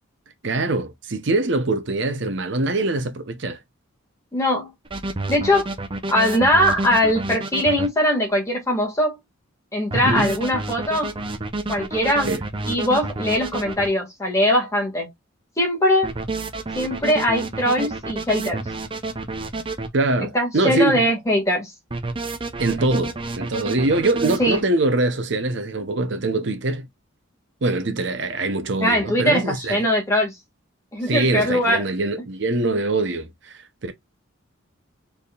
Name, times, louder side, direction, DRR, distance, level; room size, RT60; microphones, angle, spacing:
voice 1, 0.4-3.6 9.9-10.3 12.2-12.4 19.9-21.1 22.6-26.9 27.6-29.8 31.0-33.9, right 2 dB, 55° right, 0.8 m, -23 dB
voice 2, 4.3-4.7 5.3-5.7 6.1-9.2 9.7-11.1 11.7-12.3 12.7-15.1 15.6-16.1 16.7-18.7 20.2-21.7 24.4-24.6 28.8-30.4 30.9-31.8, left 1 dB, 15° left, 1.9 m, -21 dB
sound 1, 4.9-7.9 9.9-13.9 16.0-19.9 21.9-24.6, right 2 dB, 25° right, 0.6 m, -29 dB
4.2 x 3.6 x 2.4 m
head